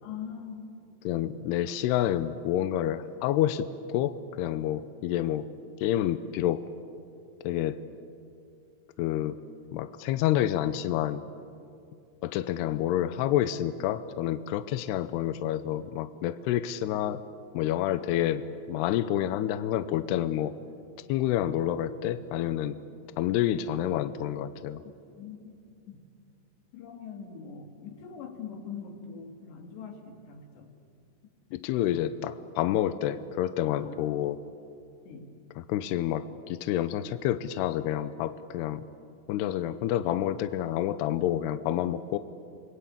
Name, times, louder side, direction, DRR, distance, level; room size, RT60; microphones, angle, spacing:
voice 1, 0.0-0.7 25.2-25.5 25.9-26.0 26.7-30.7 33.9-34.0 35.1-35.3, left 6 dB, 65° left, 4 dB, 4.2 m, -42 dB
voice 2, 1.0-5.5 5.8-6.7 7.4-7.8 9.0-9.4 9.7-11.2 12.2-17.2 17.5-20.6 21.1-22.8 23.2-24.8 31.5-34.4 35.6-38.8 39.3-42.2, left 12 dB, 80° left, 12 dB, 2.4 m, -28 dB
29.0 x 21.5 x 8.6 m, 2.5 s
omnidirectional pair, 5.5 m